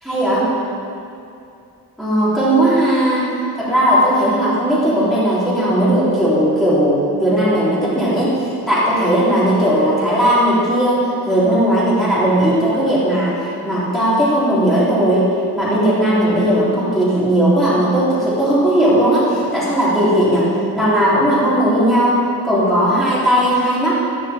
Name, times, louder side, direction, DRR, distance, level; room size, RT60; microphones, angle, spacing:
voice 1, 0.0-0.5 2.0-3.2 3.6-22.2 22.4-23.9, right 1 dB, ahead, -11 dB, 3.5 m, -16 dB
13.0 x 11.5 x 4.4 m, 2.6 s
wide cardioid pair, 175°, 38 cm